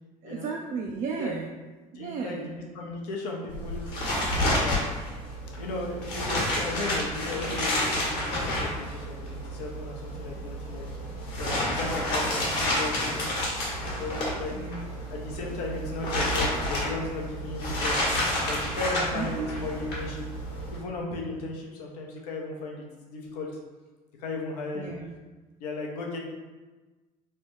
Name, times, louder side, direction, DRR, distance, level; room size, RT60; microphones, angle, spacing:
voice 1, 0.2-1.5 1.9-2.5 11.6-11.8 14.5-14.9 19.1-19.5 24.7-25.1, right 4 dB, 40° right, 1 dB, 0.4 m, -34 dB
voice 2, 1.9-3.9 4.2-4.9 5.6-10.9 11.4-13.3 13.7-14.5 15.1-18.1 18.4-20.3 20.7-23.5 24.2-24.9 25.6-26.2, left 2 dB, 75° left, -1 dB, 0.7 m, -36 dB
sound 1, 3.5-20.8, left 1 dB, 55° left, 1.1 m, -30 dB
3.2 x 2.2 x 3.0 m, 1.2 s
hypercardioid pair, 65°, 20 cm